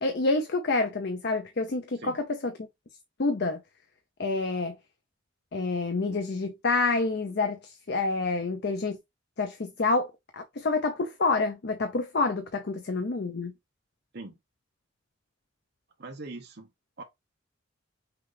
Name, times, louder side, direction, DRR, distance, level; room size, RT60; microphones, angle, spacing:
voice 1, 0.0-2.5 3.2-3.6 4.2-4.7 5.5-9.0 9.4-13.5, left 3 dB, 55° left, 0.6 m, -28 dB
voice 2, 16.0-16.7 17.0-17.1, right 2 dB, 55° right, 0.9 m, -41 dB
5.9 x 2.4 x 3.3 m
head